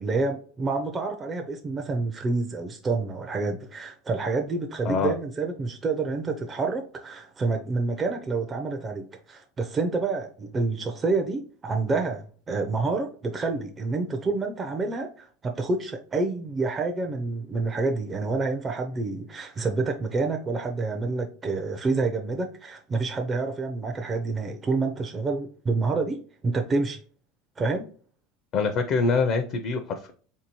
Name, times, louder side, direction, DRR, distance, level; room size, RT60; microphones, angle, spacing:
voice 1, 0.0-27.0 27.6-27.9, right 3 dB, 20° right, 0.4 m, -28 dB
voice 2, 28.5-30.1, left 4 dB, 40° left, 0.4 m, -24 dB
3.9 x 2.7 x 2.9 m
supercardioid pair, 145°, 0 cm